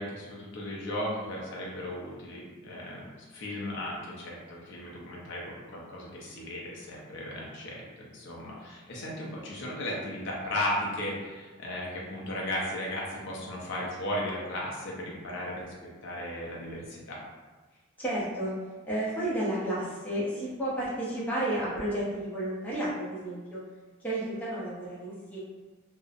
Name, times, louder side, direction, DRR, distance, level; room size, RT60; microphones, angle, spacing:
voice 1, 0.0-15.7 16.0-17.2, left 1 dB, 60° left, -4 dB, 0.5 m, -36 dB
voice 2, 18.0-18.5 18.8-23.6 24.0-25.4, right 1 dB, 10° left, -8 dB, 0.5 m, -32 dB
2.7 x 2.0 x 2.4 m, 1.3 s
head